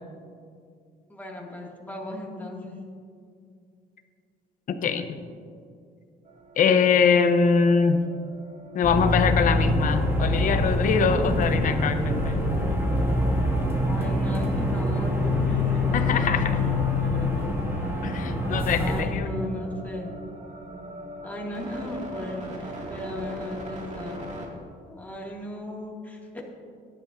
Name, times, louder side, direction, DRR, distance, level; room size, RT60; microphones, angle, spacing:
voice 1, 1.1-2.8 13.9-17.6 17.8-17.9 18.8-20.1 21.2-24.3 24.9-26.6, left 1 dB, 10° left, -2 dB, 2.2 m, -36 dB
voice 2, 4.7-5.1 6.6-8.0 8.7-12.5 15.9-16.6 18.0-19.3, left 6 dB, 50° left, 9 dB, 0.8 m, -23 dB
sound 1, 6.2-24.5, right 1 dB, 45° right, 2.2 m, -41 dB
sound 2, 8.8-19.0, left 1 dB, 15° right, 2.0 m, -25 dB
16.5 x 11.0 x 2.6 m, 2.3 s
cardioid pair, 110°, 17 cm